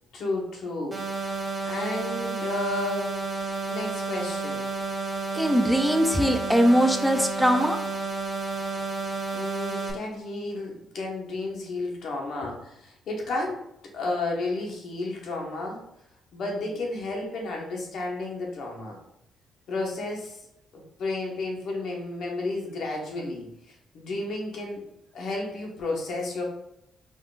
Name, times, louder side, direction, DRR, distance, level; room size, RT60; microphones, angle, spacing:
voice 1, 0.1-1.4 1.7-3.2 3.7-4.7 9.3-13.6 13.9-15.8 16.3-19.0 19.7-20.4 20.7-26.4, left 2 dB, 70° left, 0 dB, 1.3 m, -32 dB
sound 1, 0.9-9.9, right 3 dB, 20° right, 1.5 m, -31 dB
voice 2, 5.3-7.8, equal, 5° right, 6 dB, 0.4 m, -21 dB
4.3 x 4.1 x 2.5 m, 0.78 s
cardioid pair, 90°, 0 cm